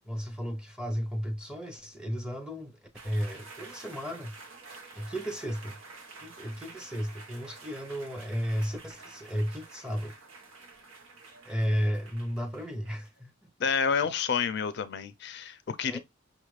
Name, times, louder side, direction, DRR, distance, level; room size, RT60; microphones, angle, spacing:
voice 1, 0.0-2.8 3.0-4.4 4.9-5.8 6.2-10.1 11.4-13.3 15.8-16.0, equal, 5° right, 0.6 m, -33 dB
sound 1, 2.9-13.2, right 3 dB, 90° right, 1.1 m, -49 dB
voice 2, 13.6-16.0, left 6 dB, 55° left, 0.4 m, -29 dB
5.5 x 2.4 x 3.1 m
head